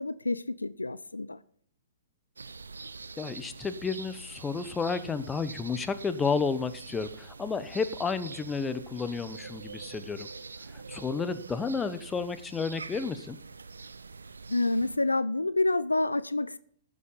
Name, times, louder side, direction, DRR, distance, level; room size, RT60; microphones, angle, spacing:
voice 1, 0.0-1.4 14.5-16.6, left 2 dB, 90° left, 0.6 m, -28 dB
sound 1, 2.4-15.0, right 4 dB, 80° right, 0.7 m, -44 dB
voice 2, 3.2-10.3 10.9-13.4, left 5 dB, 15° left, 1.0 m, -31 dB
14.0 x 7.5 x 5.4 m
figure-of-eight pair, 115°, 0 cm